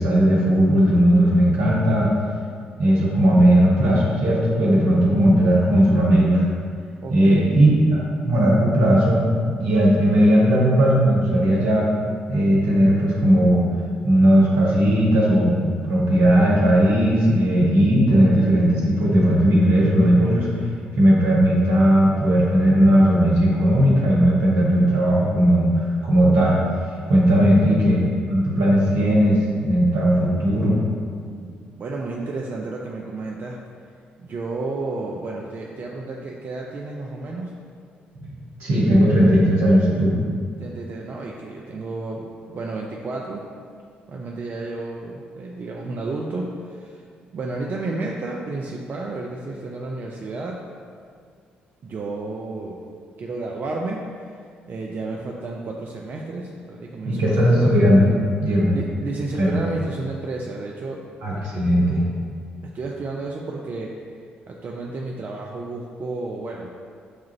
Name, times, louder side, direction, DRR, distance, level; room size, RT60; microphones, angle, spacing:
voice 1, 0.0-2.1 2.8-6.5 7.1-9.3 9.6-11.9 12.3-13.6 14.0-20.5 21.0-26.6 27.1-28.0 28.3-30.8 38.2-38.3 38.6-40.1 57.0-58.8 59.4-59.5 61.2-62.0, equal, 65° right, -5 dB, 0.9 m, -17 dB
voice 2, 7.0-7.6 27.4-27.7 31.2-33.6 34.2-37.5 40.6-43.4 44.1-47.0 47.3-50.6 51.8-52.8 53.2-54.3 54.7-57.9 58.7-61.0 61.5-61.6 62.7-63.9 64.5-66.7, right 3 dB, 40° right, -1 dB, 0.4 m, -31 dB
6.4 x 2.4 x 2.9 m, 2.1 s
figure-of-eight pair, 45°, 5 cm